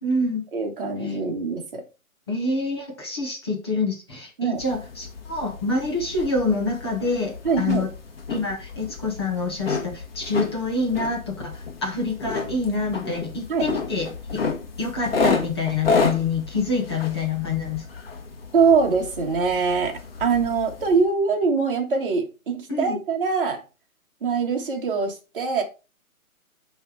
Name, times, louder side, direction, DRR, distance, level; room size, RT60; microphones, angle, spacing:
voice 1, 0.0-0.4 1.0-1.2 2.3-7.9 8.3-14.4 14.8-17.8 22.7-23.0, left 3 dB, 20° left, 0 dB, 1.0 m, -26 dB
voice 2, 0.5-1.8 4.4-4.6 7.4-7.8 13.5-13.7 18.5-23.6 24.2-25.6, right 5 dB, 40° right, 1 dB, 1.6 m, -23 dB
sound 1, 4.6-21.0, left 4 dB, 45° left, 1.3 m, -31 dB
9.7 x 3.4 x 4.7 m, 0.30 s
hypercardioid pair, 175°, 42 cm